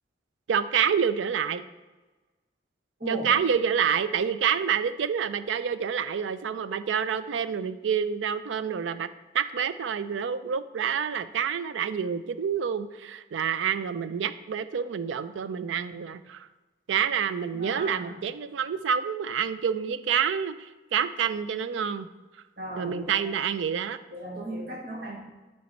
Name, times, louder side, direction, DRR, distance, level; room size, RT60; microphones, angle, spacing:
voice 1, 0.5-1.6 3.1-9.1 9.3-16.5 16.9-22.1 22.8-24.0, right 7 dB, 85° right, 13 dB, 0.4 m, -28 dB
voice 2, 3.0-3.3 17.5-18.2 22.6-23.2 24.1-25.2, right 1 dB, 55° right, -1 dB, 1.5 m, -36 dB
9.5 x 3.4 x 4.0 m, 1.2 s
head